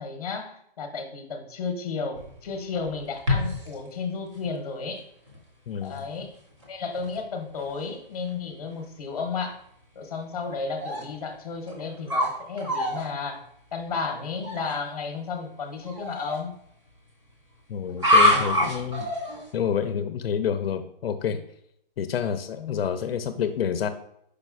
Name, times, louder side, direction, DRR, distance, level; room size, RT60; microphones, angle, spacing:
voice 1, 0.0-5.1 5.8-6.3 6.7-9.6 9.9-13.4 13.7-16.5 22.6-22.8, left 4 dB, 40° left, 5 dB, 0.7 m, -33 dB
sound 1, 2.1-3.7 4.4-4.5 5.3-5.4 6.0-6.2 6.6-6.7 6.9-7.2 7.7-7.8 10.8-11.0 11.7-12.3 12.6-13.1 14.4-14.7 15.8-16.4 17.9-19.5, left 1 dB, 30° right, 0.7 m, -25 dB
voice 2, 5.7-6.0 17.7-19.1 19.5-21.4 22.0-23.9, left 8 dB, 80° left, 9 dB, 0.5 m, -28 dB
5.0 x 4.1 x 2.4 m, 0.73 s
hypercardioid pair, 175°, 29 cm